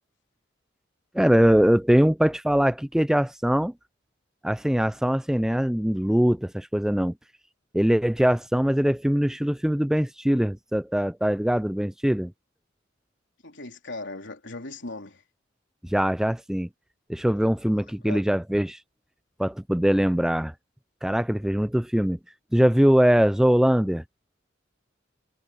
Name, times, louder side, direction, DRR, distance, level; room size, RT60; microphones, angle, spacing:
voice 1, 1.1-3.7 4.4-7.1 7.7-12.3 15.8-16.7 17.1-18.8 19.4-20.5 21.0-22.2 22.5-24.0, equal, 5° right, 0.3 m, -22 dB
voice 2, 13.4-15.2 18.0-18.3, left 2 dB, 65° left, 3.9 m, -38 dB
head